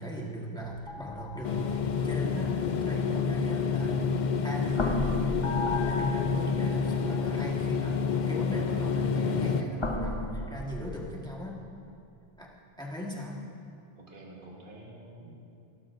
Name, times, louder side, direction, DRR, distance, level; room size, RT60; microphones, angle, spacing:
voice 1, 0.0-11.6 12.4-12.5 12.8-13.4, equal, 5° left, -3 dB, 1.6 m, -39 dB
sound 1, 0.6-4.2 4.7-7.2 8.1-8.3 9.8-11.6, left 2 dB, 30° left, 0.9 m, -35 dB
sound 2, 1.4-9.6, left 5 dB, 55° left, 0.6 m, -28 dB
voice 2, 14.0-15.3, right 2 dB, 55° right, -2 dB, 1.8 m, -48 dB
17.5 x 12.5 x 2.7 m, 2.5 s
omnidirectional pair, 1.0 m